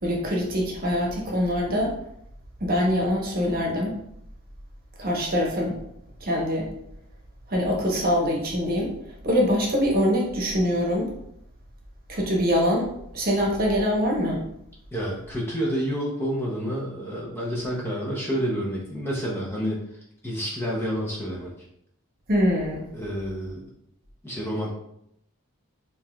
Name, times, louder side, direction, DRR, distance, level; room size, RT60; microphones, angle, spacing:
voice 1, 0.0-1.9 2.6-4.0 5.0-5.8 6.2-6.7 7.5-8.9 9.2-11.1 12.1-12.9 13.1-14.4 22.3-22.9, equal, 45° right, -1 dB, 0.9 m, -24 dB
voice 2, 14.9-19.8 20.2-21.5 22.9-23.6 24.2-24.7, equal, 10° left, -4 dB, 0.6 m, -29 dB
5.1 x 2.8 x 2.3 m, 0.76 s
head